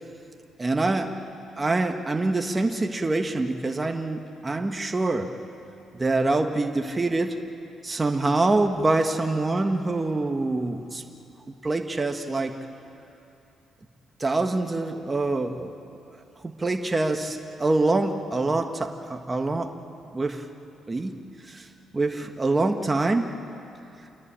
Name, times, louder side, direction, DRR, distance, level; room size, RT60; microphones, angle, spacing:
voice 1, 0.6-1.2 1.6-5.4 5.9-7.4 7.8-11.0 11.6-12.6 14.2-15.7 16.4-19.8 20.1-20.5 20.9-21.2 21.4-21.7 21.9-23.3, right 2 dB, 20° right, 5 dB, 1.5 m, -25 dB
28.0 x 23.0 x 8.9 m, 2.8 s
cardioid pair, 90°, 0 cm